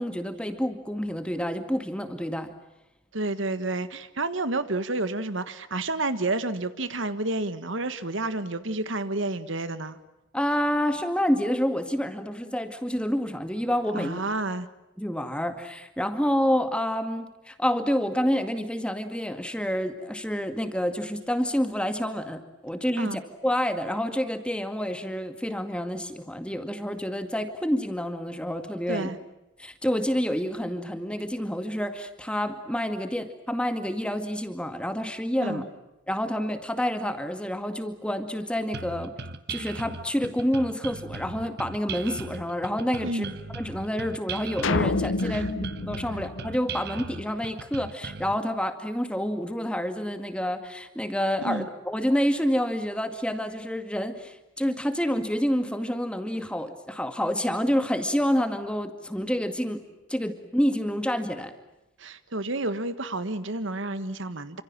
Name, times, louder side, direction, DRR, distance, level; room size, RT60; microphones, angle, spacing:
voice 1, 0.0-2.5 10.3-14.2 15.0-29.1 29.6-35.6 36.1-39.1 39.5-43.3 43.5-59.8 60.1-61.5, equal, 5° left, 2.1 m, -28 dB
voice 2, 3.1-10.0 13.9-14.7 23.0-23.2 28.9-29.2 35.4-35.7 43.0-43.4 45.2-45.5 51.4-51.7 62.0-64.6, right 2 dB, 65° right, 1.5 m, -30 dB
sound 1, 38.7-48.3, right 4 dB, 50° right, 1.4 m, -38 dB
sound 2, 44.6-47.1, left 3 dB, 70° left, 1.0 m, -28 dB
28.5 x 26.5 x 7.5 m
head